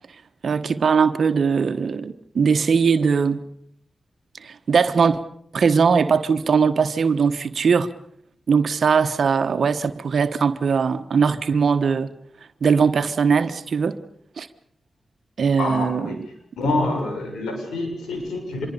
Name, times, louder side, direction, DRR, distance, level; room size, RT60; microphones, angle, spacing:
voice 1, 0.4-3.4 4.4-5.2 5.5-7.9 8.5-12.1 12.6-14.0 14.4-14.5 15.4-16.3, right 5 dB, 70° right, 1.2 m, -20 dB
voice 2, 15.6-16.2 16.6-18.7, left 2 dB, 90° left, 6.9 m, -26 dB
26.0 x 23.0 x 6.9 m
supercardioid pair, 40°, 0 cm